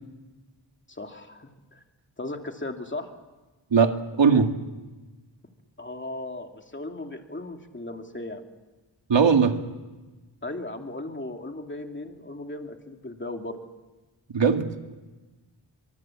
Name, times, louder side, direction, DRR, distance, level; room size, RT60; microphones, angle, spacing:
voice 1, 0.9-1.8 2.2-3.1 5.8-8.5 10.4-13.6, left 2 dB, 25° left, 4 dB, 2.7 m, -36 dB
voice 2, 3.7-4.6 9.1-9.6 14.3-14.9, right 5 dB, 75° right, 5 dB, 2.1 m, -20 dB
24.5 x 23.5 x 7.3 m, 1.2 s
wide cardioid pair, 90°, 44 cm